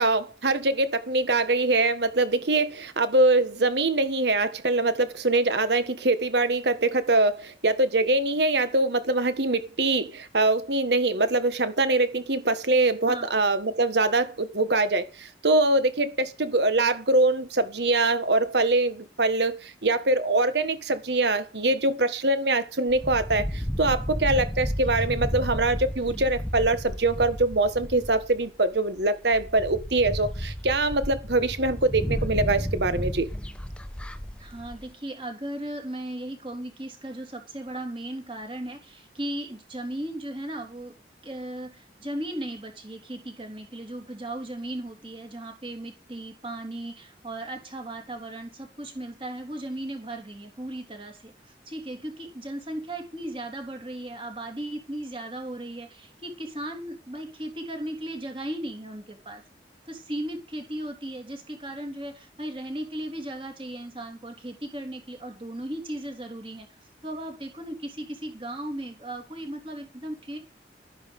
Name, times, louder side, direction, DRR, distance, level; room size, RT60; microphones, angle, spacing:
voice 1, 0.0-33.3, right 2 dB, 70° right, 1.5 m, -23 dB
sound 1, 22.9-28.4 29.0-29.1 29.3-34.8, equal, 5° left, 1.0 m, -32 dB
voice 2, 34.4-40.9 41.2-59.4 59.9-70.4, right 1 dB, 30° right, 3.2 m, -36 dB
12.5 x 10.5 x 5.4 m
head